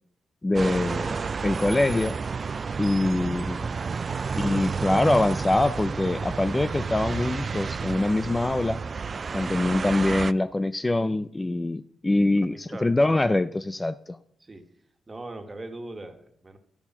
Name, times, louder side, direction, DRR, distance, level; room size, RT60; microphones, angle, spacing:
voice 1, 0.4-1.2 1.4-2.2 2.8-3.7 4.4-8.8 9.3-14.2, left 2 dB, 20° left, 13 dB, 0.5 m, -24 dB
sound 1, 0.5-10.3, right 5 dB, 45° right, 0.3 m, -31 dB
voice 2, 12.5-12.9 14.4-14.7 15.1-16.6, right 2 dB, 30° right, 6 dB, 1.7 m, -40 dB
12.0 x 7.2 x 6.0 m, 0.69 s
cardioid pair, 65°, 0 cm